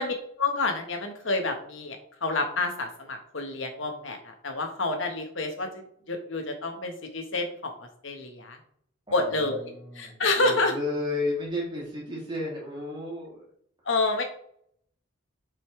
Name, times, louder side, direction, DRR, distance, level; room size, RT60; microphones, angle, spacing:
voice 1, 0.0-2.0 2.2-8.6 9.1-9.6 9.9-10.7 13.8-14.2, left 3 dB, 75° left, 4 dB, 1.4 m, -28 dB
voice 2, 9.1-13.4, left 2 dB, 25° right, -4 dB, 2.9 m, -33 dB
7.9 x 5.5 x 3.3 m, 0.66 s
head